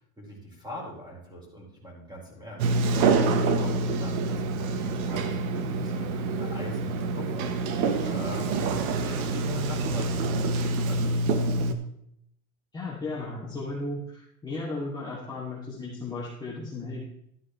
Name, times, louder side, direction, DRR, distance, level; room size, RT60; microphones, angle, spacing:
voice 1, 0.0-2.7 3.1-7.5 8.0-11.4, equal, 10° right, -3 dB, 4.7 m, -42 dB
Sliding door, 2.6-11.7, right 3 dB, 75° right, 1.4 m, -26 dB
voice 2, 12.7-17.0, left 2 dB, 10° left, -8 dB, 2.7 m, -35 dB
13.0 x 9.5 x 3.2 m, 0.73 s
supercardioid pair, 135°, 44 cm